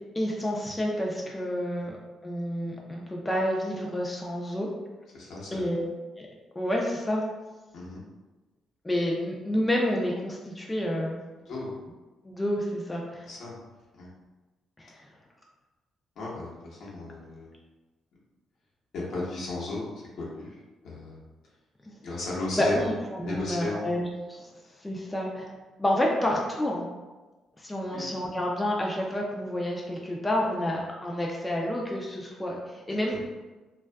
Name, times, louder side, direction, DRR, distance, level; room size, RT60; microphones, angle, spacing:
voice 1, 0.1-2.0 2.2-4.7 5.5-5.9 6.6-7.2 8.8-11.2 12.2-13.3 14.8-14.9 22.6-24.5 24.8-25.5 25.8-26.8 27.6-33.3, left 1 dB, 15° left, -2 dB, 0.4 m, -29 dB
voice 2, 5.1-5.7 7.7-8.0 11.5-11.7 13.2-13.6 13.9-14.1 16.2-17.5 18.9-20.6 20.8-21.2 22.0-22.9 23.2-23.9 24.6-24.8 27.9-28.0 33.1-33.2, left 2 dB, 70° left, -6 dB, 0.8 m, -35 dB
2.5 x 2.3 x 2.2 m, 1.2 s
cardioid pair, 90°, 0 cm